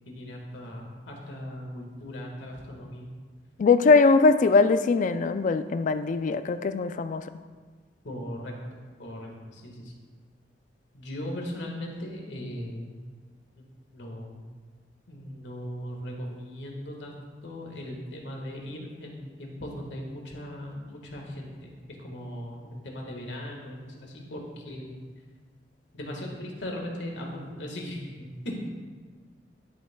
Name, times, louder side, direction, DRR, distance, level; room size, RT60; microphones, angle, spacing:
voice 1, 0.1-3.1 8.0-8.5 9.0-9.9 10.9-12.9 13.9-14.4 15.1-21.7 22.0-25.0 25.9-28.6, equal, 80° left, 0 dB, 1.5 m, -38 dB
voice 2, 3.6-7.3, left 4 dB, 45° left, 12 dB, 0.3 m, -21 dB
11.5 x 7.3 x 2.2 m, 1.5 s
head